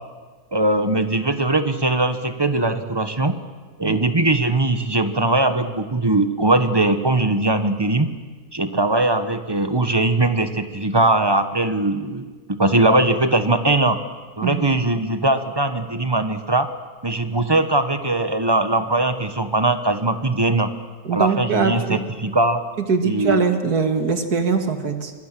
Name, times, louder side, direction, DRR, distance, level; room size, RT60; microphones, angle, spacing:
voice 1, 0.5-3.3 3.8-8.1 8.5-14.0 14.4-16.7 17.0-20.7 21.1-22.6 23.0-23.4, right 2 dB, 20° right, 9 dB, 1.1 m, -20 dB
voice 2, 21.0-22.0 22.9-25.1, right 5 dB, 85° right, 7 dB, 2.4 m, -21 dB
25.0 x 21.0 x 7.6 m, 1.4 s
omnidirectional pair, 1.6 m